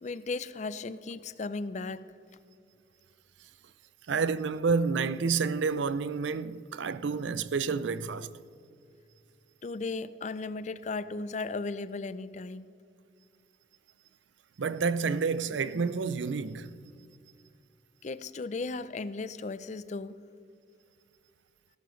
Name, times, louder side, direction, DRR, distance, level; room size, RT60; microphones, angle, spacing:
voice 1, 0.0-2.1 9.6-12.7 18.0-20.2, left 3 dB, 40° left, 0.4 m, -36 dB
voice 2, 4.1-8.3 14.6-16.7, right 5 dB, 80° right, 0.5 m, -29 dB
17.0 x 11.5 x 3.2 m
head